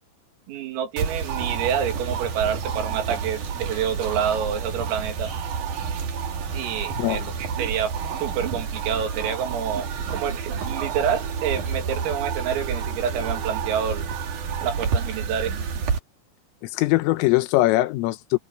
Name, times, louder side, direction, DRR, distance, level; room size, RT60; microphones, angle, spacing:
voice 1, 0.5-5.3 6.5-14.1 14.6-15.5, right 8 dB, 90° right, 5.5 m, -28 dB
sound 1, 1.0-16.0, right 6 dB, 45° right, 3.1 m, -29 dB
voice 2, 6.9-7.3 16.7-18.4, left 19 dB, 90° left, 3.5 m, -21 dB
omnidirectional pair, 5.8 m